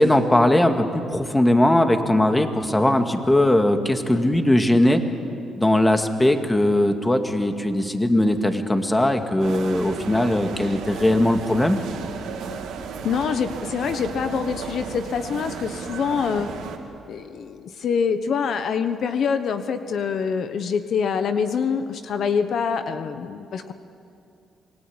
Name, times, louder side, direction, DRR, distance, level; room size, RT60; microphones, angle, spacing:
voice 1, 0.0-5.0 5.6-11.8, left 1 dB, 10° left, 6 dB, 2.1 m, -19 dB
sound 1, 9.4-16.8, right 6 dB, 85° right, 2.7 m, -34 dB
voice 2, 13.0-16.5 17.1-23.7, left 6 dB, 65° left, 9 dB, 1.1 m, -25 dB
28.0 x 20.5 x 8.8 m, 2.6 s
cardioid pair, 90°, 0 cm